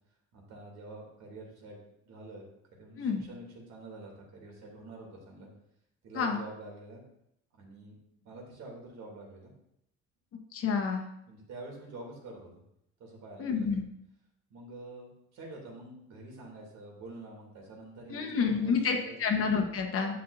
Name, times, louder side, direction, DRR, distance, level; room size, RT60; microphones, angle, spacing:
voice 1, 0.3-1.8 2.0-2.4 2.7-5.5 6.0-7.0 7.5-9.5 11.3-12.5 13.0-13.7 14.5-18.7 19.1-19.2 20.1-20.2, right 2 dB, 65° right, -1 dB, 3.1 m, -47 dB
voice 2, 3.0-3.3 6.1-6.4 10.5-11.1 13.4-13.8 18.1-20.2, left 5 dB, 50° left, 3 dB, 1.4 m, -29 dB
11.0 x 7.5 x 2.7 m, 0.78 s
cardioid pair, 140°, 29 cm